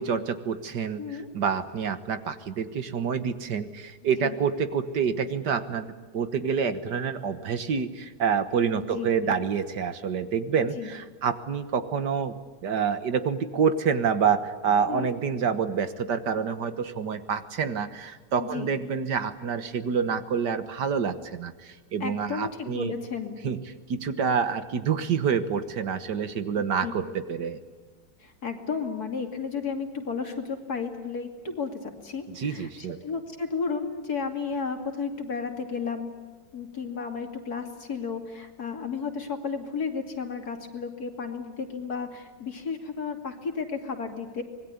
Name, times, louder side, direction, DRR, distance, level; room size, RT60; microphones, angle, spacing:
voice 1, 0.0-22.9 23.4-23.6 23.9-27.6 32.3-33.0, right 6 dB, 70° right, 11 dB, 1.9 m, -27 dB
voice 2, 1.0-1.3 4.2-4.4 8.8-9.4 10.7-10.9 14.9-15.1 18.4-18.7 22.0-23.4 26.6-26.9 28.2-36.1 36.5-44.4, left 5 dB, 55° left, 5 dB, 3.1 m, -33 dB
25.5 x 20.5 x 9.7 m, 1.3 s
omnidirectional pair, 2.0 m